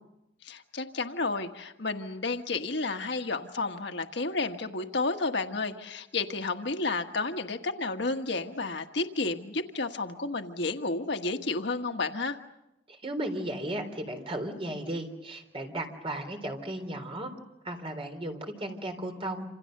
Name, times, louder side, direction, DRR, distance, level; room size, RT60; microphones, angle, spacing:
voice 1, 0.4-12.4, left 3 dB, 65° left, 6 dB, 1.5 m, -31 dB
voice 2, 12.9-17.3 17.6-19.4, right 1 dB, 30° right, 5 dB, 3.8 m, -35 dB
27.5 x 27.5 x 6.7 m, 0.89 s
head